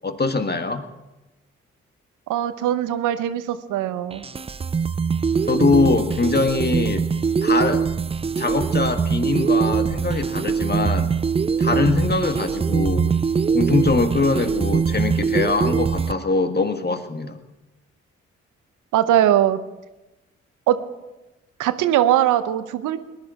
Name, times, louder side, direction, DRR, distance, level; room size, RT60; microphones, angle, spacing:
voice 1, 0.0-0.8 5.5-7.1 7.4-7.8 8.4-11.2 11.6-13.1 13.5-17.4, left 3 dB, 30° left, 7 dB, 1.7 m, -22 dB
voice 2, 2.3-4.2 18.9-19.6 20.7-20.8 21.6-23.0, right 11 dB, 80° right, 12 dB, 0.8 m, -20 dB
sound 1, 4.1-16.1, right 6 dB, 20° right, 0.4 m, -22 dB
19.5 x 11.0 x 4.9 m, 1.1 s
hypercardioid pair, 40°, 31 cm